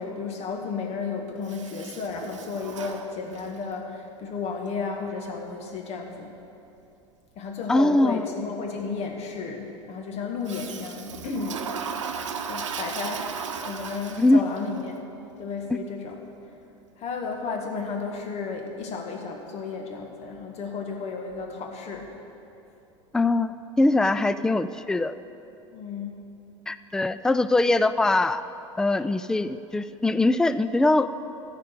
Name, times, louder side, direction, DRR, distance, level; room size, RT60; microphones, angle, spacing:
voice 1, 0.0-6.4 7.4-11.7 12.5-15.0 15.4-16.2 17.0-22.1 25.7-26.2, left 5 dB, 45° left, 1 dB, 1.9 m, -33 dB
Toilet flush, 1.4-3.7 10.4-14.6, right 6 dB, 75° right, 0.8 m, -35 dB
voice 2, 7.7-8.3 14.2-14.4 15.7-15.8 23.1-23.5 23.8-25.1 26.7-28.4 28.8-31.2, left 2 dB, 5° left, 13 dB, 0.3 m, -22 dB
14.5 x 5.2 x 8.3 m, 2.7 s
hypercardioid pair, 80°, 16 cm